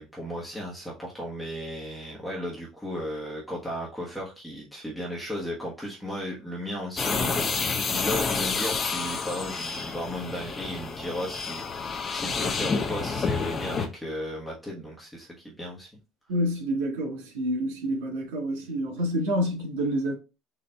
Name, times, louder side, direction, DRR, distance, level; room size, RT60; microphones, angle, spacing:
voice 1, 0.0-7.5 7.9-15.9, equal, 5° left, 1.2 m, -35 dB
sound 1, 7.0-13.9, left 4 dB, 30° left, 0.7 m, -29 dB
voice 2, 16.3-20.1, equal, 90° right, 1.8 m, -28 dB
4.3 x 2.6 x 3.4 m
supercardioid pair, 105°, 0 cm